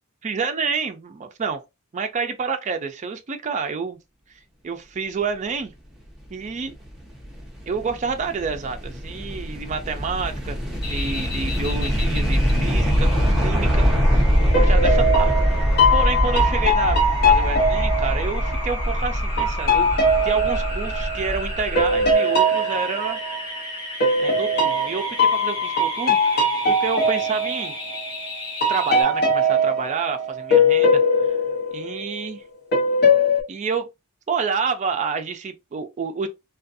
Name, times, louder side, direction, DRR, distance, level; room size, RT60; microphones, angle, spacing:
voice 1, 0.2-1.6 1.9-4.0 4.6-5.7 6.3-6.7 7.7-10.6 10.8-13.1 13.4-13.9 14.1-19.9 20.2-23.2 24.2-27.7 28.7-31.3 31.7-32.4 33.5-33.9 34.3-36.3, right 5 dB, 30° right, 0.4 m, -29 dB
sound 1, 6.6-22.1, equal, ahead, 0.7 m, -23 dB
sound 2, 10.8-29.0, left 1 dB, 25° left, 1.3 m, -34 dB
sound 3, 13.8-14.1 14.5-18.8 19.4-23.6 24.0-28.3 28.6-32.3 32.7-33.4, left 1 dB, 45° left, 0.7 m, -21 dB
2.5 x 2.3 x 2.4 m
head